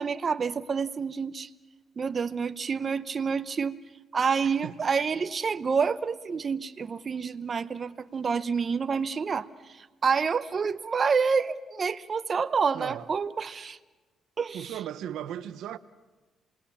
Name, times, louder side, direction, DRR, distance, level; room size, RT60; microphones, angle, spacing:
voice 1, 0.0-1.5 2.0-3.8 4.1-9.5 9.8-13.8 14.4-14.7, right 5 dB, 40° right, 0.8 m, -28 dB
voice 2, 4.4-4.7 12.7-13.1 14.5-15.8, right 11 dB, 80° right, 0.8 m, -37 dB
28.0 x 19.5 x 7.2 m
cardioid pair, 90°, 0 cm